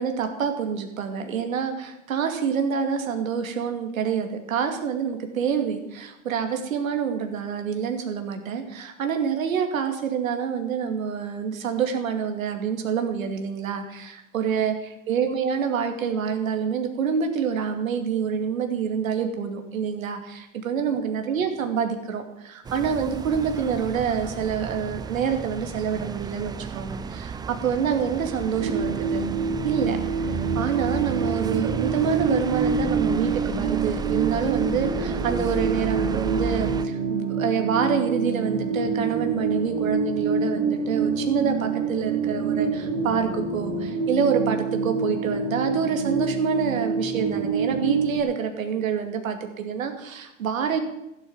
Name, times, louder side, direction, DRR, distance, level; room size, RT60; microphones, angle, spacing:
voice 1, 0.0-29.2 29.6-30.0 30.3-50.8, right 7 dB, 80° right, 5 dB, 2.5 m, -27 dB
sound 1, 22.6-36.9, right 6 dB, 10° right, 0.5 m, -33 dB
sound 2, 28.6-48.2, right 4 dB, 40° right, 3.7 m, -26 dB
15.0 x 9.0 x 7.3 m, 0.90 s
hypercardioid pair, 115°, 40 cm